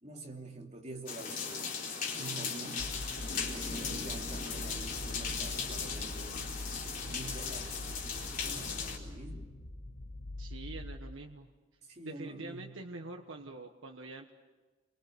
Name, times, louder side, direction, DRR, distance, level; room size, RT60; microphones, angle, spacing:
voice 1, 0.0-1.7 2.1-3.1 3.5-6.6 7.0-9.5 11.8-12.8, right 2 dB, 35° right, 1 dB, 3.0 m, -47 dB
sound 1, 1.1-9.0, left 5 dB, 40° left, 4.4 m, -37 dB
sound 2, 2.8-11.0, left 1 dB, 85° left, 1.5 m, -43 dB
voice 2, 3.6-4.0 10.4-11.5 12.0-14.3, right 2 dB, 85° right, 3 dB, 1.3 m, -45 dB
30.0 x 23.5 x 7.0 m, 1.3 s
head